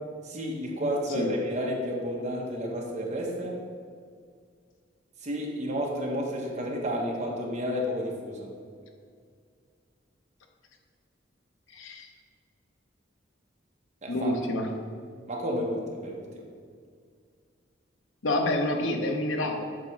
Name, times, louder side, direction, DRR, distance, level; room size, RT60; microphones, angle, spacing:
voice 1, 0.2-3.6 5.2-8.5 14.0-14.3 15.3-16.4, equal, 40° right, -1 dB, 1.0 m, -31 dB
voice 2, 11.7-12.1 14.1-14.7 18.2-19.6, left 1 dB, 85° left, 3 dB, 0.8 m, -28 dB
7.6 x 3.0 x 5.9 m, 2.1 s
head